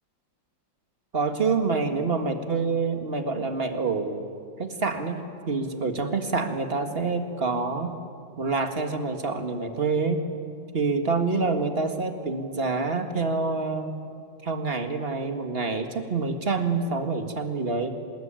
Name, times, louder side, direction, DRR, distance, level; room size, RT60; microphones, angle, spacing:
voice 1, 1.1-4.2 4.6-7.9 8.4-10.2 10.7-13.9 14.4-17.9, right 4 dB, 30° right, 6 dB, 1.9 m, -27 dB
26.5 x 21.0 x 9.0 m, 2.5 s
omnidirectional pair, 2.0 m